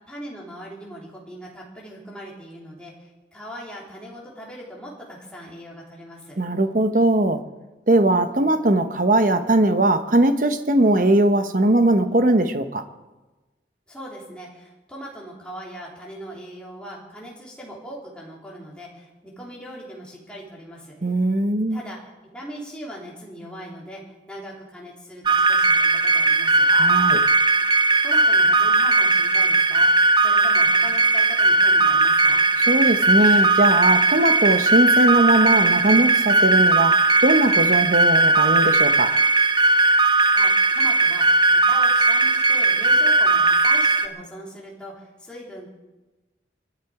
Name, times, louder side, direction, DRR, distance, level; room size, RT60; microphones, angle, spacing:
voice 1, 0.1-6.4 13.9-21.0 21.7-26.7 28.0-32.4 40.1-45.7, equal, 5° left, -4 dB, 3.0 m, -40 dB
voice 2, 6.4-7.5 7.9-12.8 21.0-21.8 26.7-27.2 32.7-39.1, right 1 dB, 45° right, 8 dB, 1.0 m, -20 dB
sound 1, 25.2-44.1, right 2 dB, 25° right, 0.6 m, -18 dB
24.5 x 10.5 x 4.9 m, 1.1 s
head